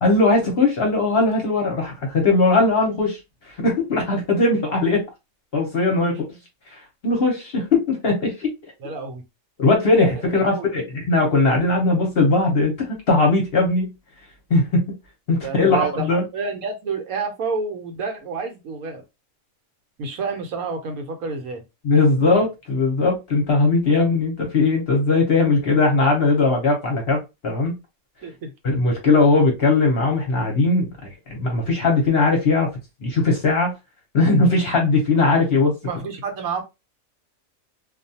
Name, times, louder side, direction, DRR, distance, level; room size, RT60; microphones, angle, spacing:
voice 1, 0.0-3.2 3.4-5.0 5.5-6.2 6.7-8.5 9.6-13.9 14.5-15.0 15.3-16.2 21.8-27.8 28.6-32.7 33.0-33.7 34.1-35.7, left 3 dB, 50° left, 0.9 m, -19 dB
voice 2, 8.8-9.2 10.4-10.7 15.4-19.0 20.0-21.6 28.2-28.5 35.8-36.6, right 4 dB, 75° right, 1.1 m, -29 dB
2.4 x 2.3 x 2.7 m
omnidirectional pair, 1.5 m